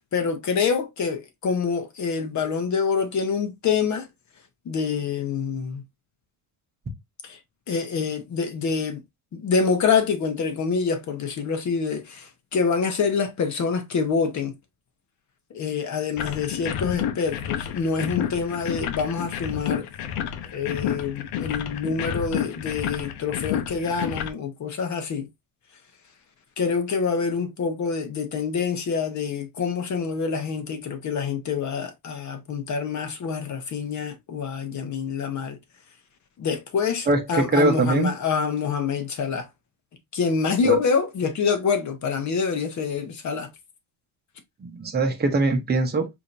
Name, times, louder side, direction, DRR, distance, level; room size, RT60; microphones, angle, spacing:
voice 1, 0.1-4.1 4.7-5.8 7.2-7.4 7.7-9.0 9.3-14.6 15.5-19.9 20.5-25.3 26.6-35.6 36.4-39.5 40.1-43.5, left 5 dB, 35° left, 0.9 m, -26 dB
sound 1, 16.2-24.3, left 9 dB, 90° left, 0.8 m, -30 dB
voice 2, 37.1-38.1 40.6-40.8 44.6-46.1, right 2 dB, 20° right, 0.8 m, -22 dB
4.9 x 2.8 x 2.5 m
cardioid pair, 155°, 49 cm